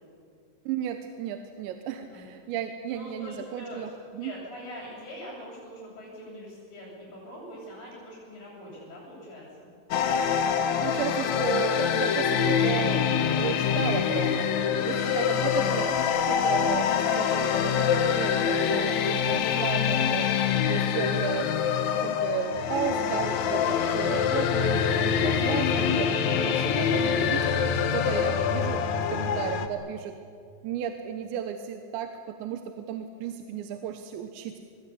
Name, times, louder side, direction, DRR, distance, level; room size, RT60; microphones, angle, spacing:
voice 1, 0.7-4.3 10.8-13.1 13.4-16.0 16.3-21.6 21.9-28.8 29.1-30.2 30.6-34.6, right 9 dB, 80° right, 6 dB, 3.3 m, -34 dB
voice 2, 2.9-3.9 4.2-9.7, equal, 50° left, -8 dB, 9.4 m, -43 dB
sound 1, 9.9-29.7, left 7 dB, 85° left, 1.6 m, -25 dB
25.5 x 21.5 x 8.5 m, 2.3 s
omnidirectional pair, 5.2 m